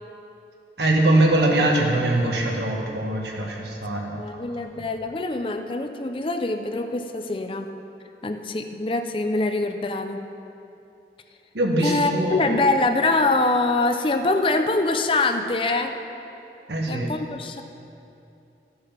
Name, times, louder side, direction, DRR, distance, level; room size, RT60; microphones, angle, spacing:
voice 1, 0.8-4.2 4.7-4.8 11.5-12.6 16.7-17.1, right 1 dB, 80° right, 0 dB, 1.7 m, -22 dB
voice 2, 4.2-7.7 8.2-10.2 11.8-15.9 16.9-17.6, left 2 dB, 30° left, 7 dB, 0.5 m, -24 dB
15.0 x 6.6 x 5.8 m, 2.8 s
head